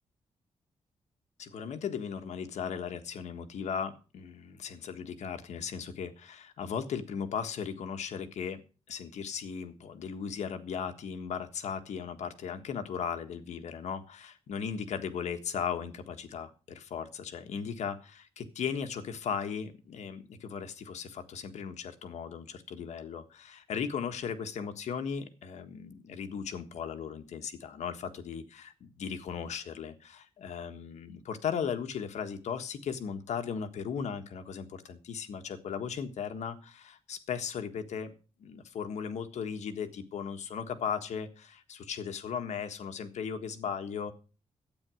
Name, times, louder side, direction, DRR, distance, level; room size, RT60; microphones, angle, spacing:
voice 1, 1.4-8.6 8.9-38.1 38.4-44.1, left 7 dB, 85° left, 8 dB, 1.5 m, -37 dB
12.5 x 9.2 x 6.3 m, 0.35 s
wide cardioid pair, 160°, 11 cm